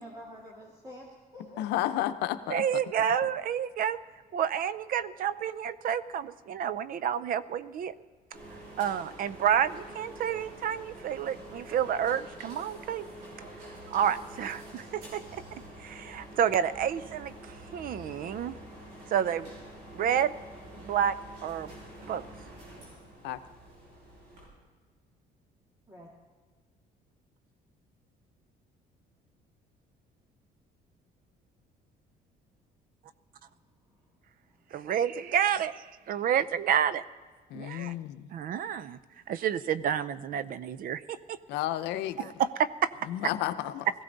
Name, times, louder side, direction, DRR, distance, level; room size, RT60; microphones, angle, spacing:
voice 1, 0.0-1.9 25.9-26.1 37.8-37.9 43.3-43.4, equal, 20° right, -3 dB, 2.2 m, -47 dB
voice 2, 1.5-2.6 23.2-23.4 37.5-38.3 41.5-42.3 43.1-43.9, left 13 dB, 90° left, 11 dB, 0.7 m, -32 dB
voice 3, 2.5-4.0 4.3-7.9 8.8-13.0 13.9-18.5 19.1-19.5 19.9-20.4 20.8-21.2 21.4-21.7 22.1-22.2 34.7-37.0 37.5-37.9 38.3-39.0 39.3-41.4 42.2-42.9, right 9 dB, 55° right, 16 dB, 0.6 m, -29 dB
sound 1, 8.3-24.4, right 1 dB, 90° right, 5.9 m, -47 dB
18.0 x 15.5 x 4.0 m, 1.5 s
cardioid pair, 110°, 17 cm